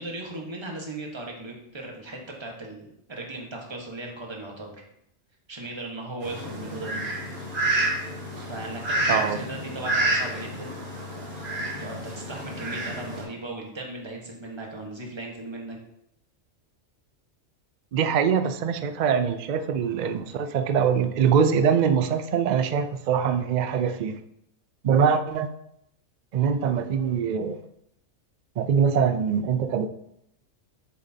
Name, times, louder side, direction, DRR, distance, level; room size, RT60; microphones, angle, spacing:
voice 1, 0.0-4.8 5.5-7.0 8.5-10.7 11.8-15.8, right 2 dB, 20° right, 0 dB, 1.3 m, -37 dB
Fowl, 6.2-13.2, right 1 dB, 40° right, 2.2 m, -29 dB
voice 2, 17.9-24.2 24.8-25.5 26.3-27.6 28.6-29.9, right 7 dB, 90° right, 10 dB, 0.4 m, -23 dB
7.8 x 6.5 x 2.8 m, 0.77 s
omnidirectional pair, 1.3 m